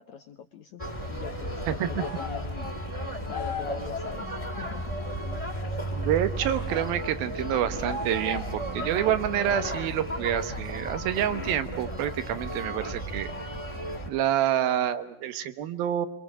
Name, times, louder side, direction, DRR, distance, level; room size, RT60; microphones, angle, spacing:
voice 1, 0.0-2.7 3.3-5.0 5.5-5.6, left 7 dB, 70° left, 8 dB, 1.8 m, -42 dB
sound 1, 0.8-14.1, right 1 dB, 10° left, 3.1 m, -34 dB
voice 2, 1.7-2.0 6.0-13.3 14.1-16.1, right 11 dB, 70° right, 11 dB, 2.9 m, -28 dB
sound 2, 2.0-2.5 3.3-3.9 6.4-6.9 7.9-8.6, left 3 dB, 30° left, 1.8 m, -37 dB
28.5 x 24.5 x 6.3 m, 0.79 s
omnidirectional pair, 4.5 m